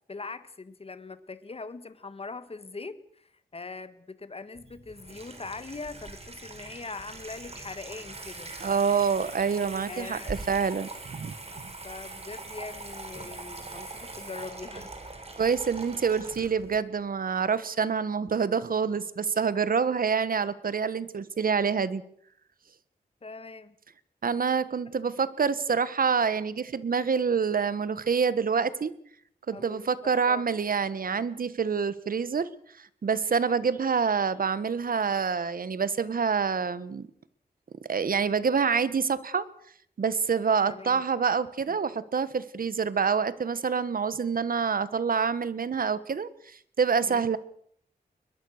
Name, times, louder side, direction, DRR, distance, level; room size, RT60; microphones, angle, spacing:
voice 1, 0.1-8.6 9.9-10.3 11.8-14.9 23.2-23.7 29.5-30.4 40.6-41.0 41.7-41.8 47.0-47.3, left 3 dB, 35° left, 13 dB, 1.6 m, -41 dB
Water tap faucet / Sink (filling or washing), 4.6-16.8, right 3 dB, 35° right, 4.5 m, -42 dB
voice 2, 8.6-11.3 15.4-22.0 24.2-28.9 29.5-32.5 32.8-37.1 37.9-39.4 40.0-47.4, right 6 dB, 60° right, 16 dB, 1.3 m, -27 dB
22.5 x 21.5 x 6.5 m, 0.63 s
wide cardioid pair, 120°, 17 cm